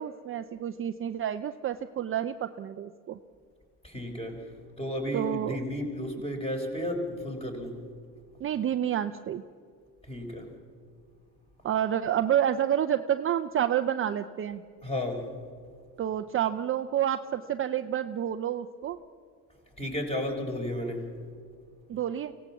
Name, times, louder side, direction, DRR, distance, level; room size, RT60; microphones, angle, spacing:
voice 1, 0.0-3.2 5.1-5.6 8.4-9.4 11.6-14.6 16.0-19.0 21.9-22.3, right 10 dB, 30° right, 8 dB, 0.6 m, -29 dB
voice 2, 3.8-7.8 10.0-10.5 14.8-15.3 19.8-21.1, left 1 dB, 15° left, 2 dB, 4.5 m, -33 dB
24.0 x 17.5 x 7.2 m, 2.1 s
supercardioid pair, 115°, 40 cm